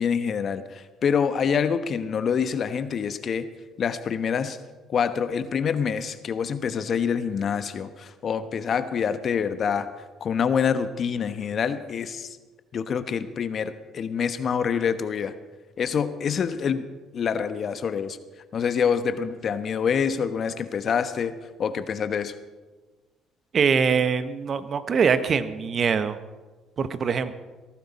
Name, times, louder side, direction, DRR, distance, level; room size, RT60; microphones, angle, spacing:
voice 1, 0.0-3.5 3.8-4.6 4.9-9.9 10.2-12.4 12.7-15.3 15.8-16.9 17.1-18.2 18.5-21.3 21.6-22.3, left 7 dB, 50° left, 11 dB, 1.1 m, -26 dB
voice 2, 23.5-26.2 26.8-27.3, right 6 dB, 50° right, 12 dB, 1.1 m, -23 dB
17.5 x 14.5 x 4.2 m, 1.3 s
hypercardioid pair, 60°, 0 cm